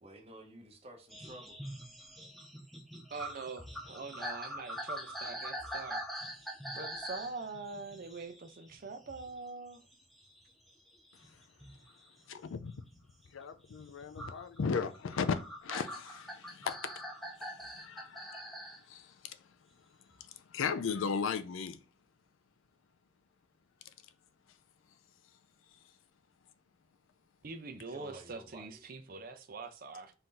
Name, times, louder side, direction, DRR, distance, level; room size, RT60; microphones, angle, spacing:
voice 1, 0.0-1.6 27.9-28.8, right 1 dB, 30° right, 0.9 m, -52 dB
sound 1, 1.1-9.4 9.7-12.1 12.6-13.0 14.2-18.8 20.1-20.2, equal, ahead, 0.5 m, -44 dB
voice 2, 3.1-6.0 6.7-9.8 27.4-30.1, right 4 dB, 45° right, 0.5 m, -44 dB
voice 3, 12.3-12.7 13.3-16.9 17.4-18.4 18.9-19.4 20.2-21.8, left 6 dB, 85° left, 0.4 m, -36 dB
4.3 x 2.6 x 3.8 m
head